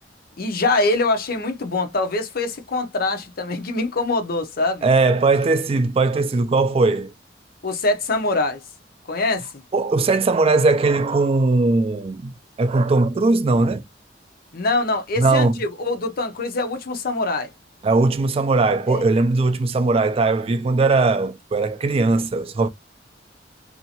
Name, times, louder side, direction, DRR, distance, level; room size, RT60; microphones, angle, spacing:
voice 1, 0.4-4.9 7.6-8.6 9.1-9.5 14.5-17.5 18.9-19.0, left 2 dB, 55° left, 0.7 m, -23 dB
voice 2, 4.8-7.1 9.7-12.3 12.6-13.8 15.2-15.5 17.8-22.7, right 3 dB, 30° right, 0.3 m, -19 dB
2.7 x 2.4 x 2.7 m
head